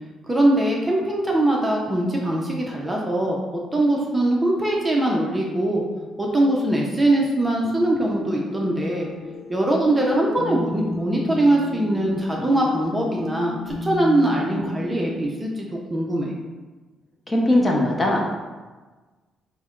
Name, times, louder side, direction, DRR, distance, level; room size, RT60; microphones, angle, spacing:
voice 1, 0.2-3.4 3.7-5.8 6.2-9.1 9.5-16.3, right 1 dB, 20° right, -2 dB, 0.6 m, -22 dB
sound 1, 8.0-15.2, left 3 dB, 70° left, 0.6 m, -33 dB
voice 2, 17.3-18.3, left 1 dB, 20° left, -1 dB, 0.7 m, -20 dB
4.1 x 2.1 x 3.7 m, 1.3 s
cardioid pair, 90°, 0 cm